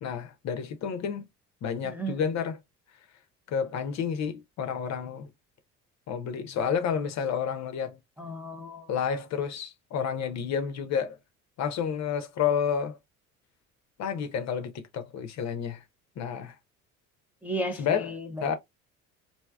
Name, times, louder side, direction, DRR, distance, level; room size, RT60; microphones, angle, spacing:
voice 1, 0.0-1.3 1.6-2.6 3.5-5.3 6.1-8.0 8.9-11.2 11.6-13.0 14.0-15.8 16.2-16.6 17.8-18.1 18.4-18.6, left 7 dB, 40° left, 0.7 m, -30 dB
voice 2, 1.8-2.3 8.2-8.9 17.4-18.5, right 1 dB, 5° right, 0.6 m, -35 dB
3.2 x 2.7 x 2.2 m
figure-of-eight pair, 60°, 42 cm